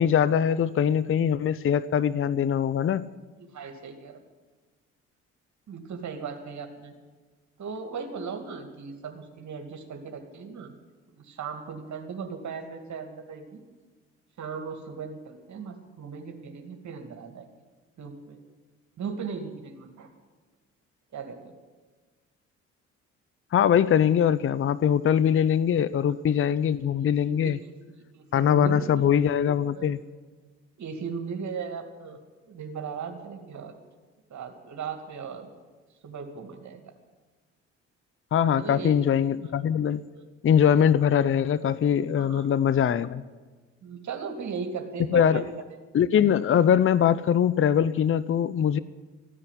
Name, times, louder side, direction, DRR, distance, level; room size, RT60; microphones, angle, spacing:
voice 1, 0.0-3.0 23.5-27.6 28.3-30.0 38.3-40.0 40.4-43.2 45.1-45.4 45.9-48.8, left 8 dB, 35° left, 17 dB, 0.7 m, -22 dB
voice 2, 3.4-4.2 5.7-6.9 7.6-10.7 11.1-13.6 14.4-17.5 18.0-18.4 19.0-20.1 21.1-21.5 26.1-26.2 27.0-29.1 29.7-30.0 30.8-32.2 32.5-33.8 34.3-35.5 36.0-36.9 38.6-39.0 40.1-40.2 42.2-42.5 43.8-45.5, right 5 dB, 55° right, 5 dB, 2.3 m, -37 dB
14.5 x 9.8 x 9.9 m, 1.3 s
hypercardioid pair, 50°, 35 cm